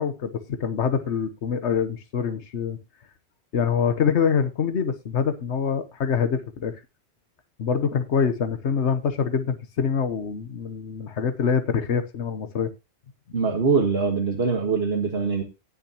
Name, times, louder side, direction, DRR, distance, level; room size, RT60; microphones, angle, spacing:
voice 1, 0.0-2.8 3.5-6.8 7.6-12.7, left 6 dB, 80° left, 1.3 m, -25 dB
voice 2, 13.3-15.4, right 5 dB, 60° right, 1.9 m, -23 dB
19.0 x 6.5 x 2.9 m
omnidirectional pair, 1.1 m